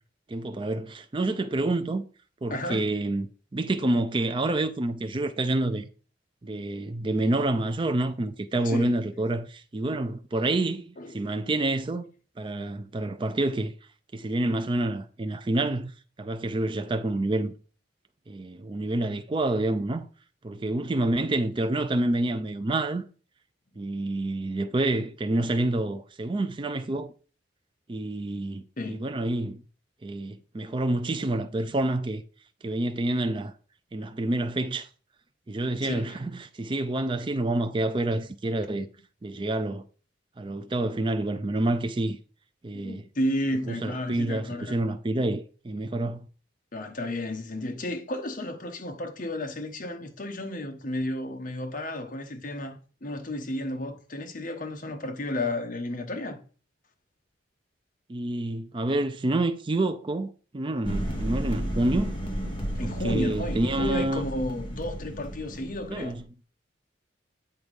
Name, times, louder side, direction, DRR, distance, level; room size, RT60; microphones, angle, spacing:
voice 1, 0.3-2.0 2.4-3.3 3.5-5.9 6.4-12.0 12.4-13.7 14.1-15.9 16.2-17.5 18.3-20.1 20.4-23.0 23.8-27.1 27.9-29.6 30.0-32.2 32.6-33.5 33.9-34.9 35.5-38.9 39.2-39.8 40.4-42.2 42.6-43.0 43.7-46.3 58.1-62.1 62.8-64.2 65.9-66.2, right 2 dB, 25° right, 0.4 m, -28 dB
voice 2, 2.5-2.9 8.6-9.0 11.0-11.2 28.8-29.0 35.8-36.2 42.8-44.8 46.7-56.4 62.8-66.2, left 1 dB, 45° left, 0.9 m, -32 dB
sound 1, 60.8-66.2, equal, 30° left, 1.7 m, -33 dB
7.9 x 3.5 x 5.2 m
head